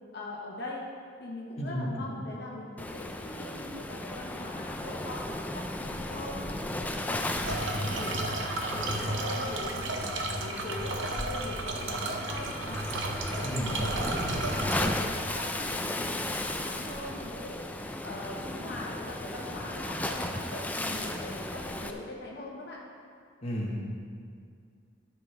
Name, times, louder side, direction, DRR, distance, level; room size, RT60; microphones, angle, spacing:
voice 1, 0.1-0.8 1.2-6.4 6.7-12.8 13.3-17.6 18.0-22.8, left 2 dB, 60° left, -3 dB, 1.2 m, -41 dB
voice 2, 1.6-2.1 7.7-7.9 13.4-13.8 14.0-14.3 23.4-23.9, equal, 35° left, -4 dB, 1.2 m, -34 dB
Waves surf, 2.8-21.9, left 1 dB, 10° left, 0.4 m, -35 dB
sound 1, 7.4-15.0, right 2 dB, 65° right, 0.8 m, -33 dB
13.5 x 6.0 x 3.3 m, 2.2 s
head